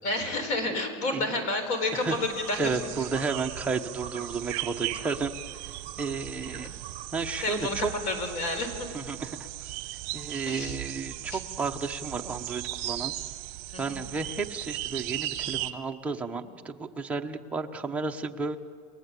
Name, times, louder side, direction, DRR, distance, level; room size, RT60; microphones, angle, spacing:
voice 1, 0.0-2.7 6.6-6.8 7.4-7.7 8.0-8.9 10.5-10.8 11.3-11.4 13.7-14.1, left 2 dB, 45° left, 7 dB, 4.4 m, -30 dB
sound 1, 1.9-15.7, right 15 dB, 55° right, 1.1 m, -37 dB
voice 2, 2.6-5.3 6.0-6.7 7.1-7.9 8.9-9.7 10.1-13.1 13.8-18.6, right 4 dB, 5° right, 2 dB, 0.9 m, -32 dB
30.0 x 21.5 x 8.3 m, 2.3 s
cardioid pair, 175°, 18 cm